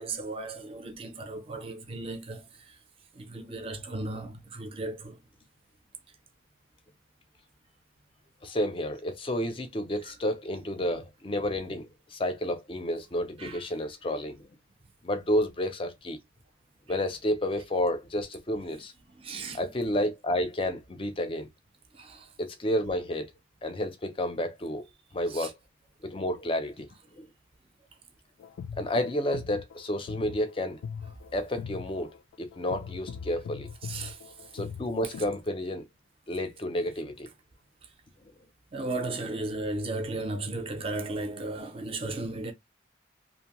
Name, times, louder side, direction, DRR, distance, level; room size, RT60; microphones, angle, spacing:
voice 1, 0.0-2.5 3.2-5.2 13.4-13.6 19.2-19.7 21.9-22.3 25.3-25.5 33.8-34.2 38.7-42.5, right 2 dB, 30° right, 0.5 m, -35 dB
voice 2, 8.4-14.5 15.0-16.2 16.9-18.9 19.5-21.5 22.4-23.3 23.6-24.9 25.1-25.5 26.0-26.9 27.2-27.3 28.8-30.8 31.3-33.7 34.5-35.8 36.3-37.3, left 1 dB, 25° left, 0.4 m, -30 dB
sound 1, 28.4-35.4, left 6 dB, 90° left, 0.3 m, -41 dB
2.6 x 2.0 x 2.9 m
head